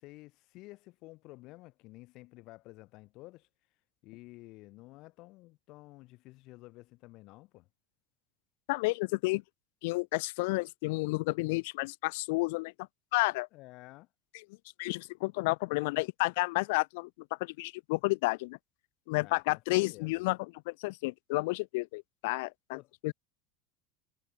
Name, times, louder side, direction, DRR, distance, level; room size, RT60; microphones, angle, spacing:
voice 1, 0.0-3.5 4.0-7.7 13.5-14.1 19.2-20.2 22.7-22.9, left 20 dB, 40° left, 7.4 m, -52 dB
voice 2, 8.7-9.4 9.8-12.7 13.1-13.5 14.8-17.1 17.4-18.6 19.1-20.4 20.7-22.8 23.0-23.1, left 24 dB, 60° left, 0.4 m, -31 dB
supercardioid pair, 180°, 0 cm